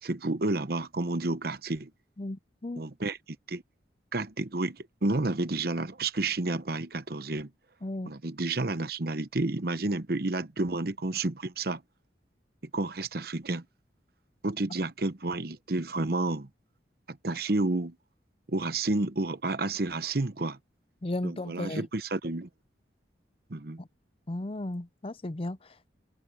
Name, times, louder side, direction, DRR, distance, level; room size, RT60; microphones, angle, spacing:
voice 1, 0.0-1.9 2.8-3.2 3.5-3.6 4.1-7.5 8.0-11.8 12.7-13.6 14.4-16.5 17.1-18.0 18.5-20.6 21.2-22.5 23.5-23.8, right 2 dB, 55° right, 1.0 m, -30 dB
voice 2, 2.2-2.8 7.8-8.1 21.0-21.9 23.8-23.9 24.3-25.9, left 1 dB, 30° left, 0.6 m, -35 dB
head